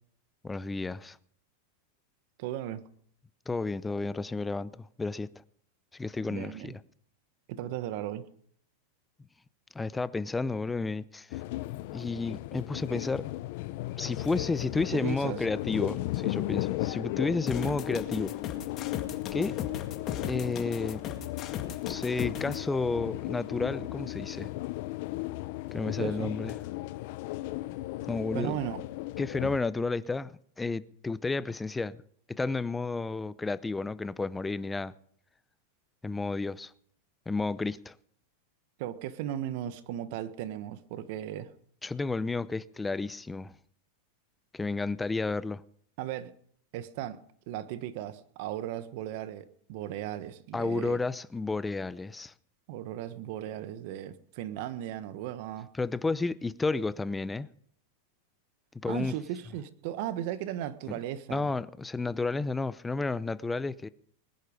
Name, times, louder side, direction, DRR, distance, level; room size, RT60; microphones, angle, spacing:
voice 1, 0.4-1.2 3.5-5.3 5.9-6.8 9.7-11.4 11.9-13.2 14.0-18.4 19.3-19.6 20.3-21.0 21.9-24.5 25.7-26.5 28.1-28.6 29.2-32.0 32.3-34.9 36.0-36.7 37.3-37.9 41.8-43.5 44.5-45.6 50.5-52.3 55.8-57.5 58.7-59.2 60.9-61.0 61.3-63.9, left 3 dB, 10° left, 0.7 m, -31 dB
voice 2, 2.4-2.8 6.2-6.7 7.5-8.3 14.9-15.4 26.0-26.3 28.3-28.9 38.8-41.5 46.0-46.3 46.7-47.2 47.5-51.0 52.7-55.7 58.8-61.5, right 11 dB, 60° right, 1.3 m, -36 dB
sound 1, 11.3-29.6, left 18 dB, 60° left, 0.7 m, -36 dB
sound 2, 17.5-22.6, left 9 dB, 40° left, 2.0 m, -38 dB
20.5 x 10.5 x 5.2 m
hypercardioid pair, 115°, 0 cm